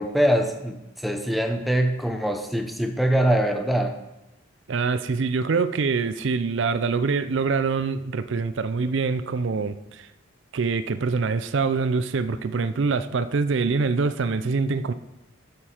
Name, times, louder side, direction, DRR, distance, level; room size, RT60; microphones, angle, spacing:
voice 1, 0.0-4.0, right 1 dB, ahead, 4 dB, 0.7 m, -23 dB
voice 2, 4.7-10.1 10.5-14.9, right 4 dB, 60° right, 12 dB, 0.5 m, -25 dB
11.0 x 6.8 x 4.5 m, 0.95 s
head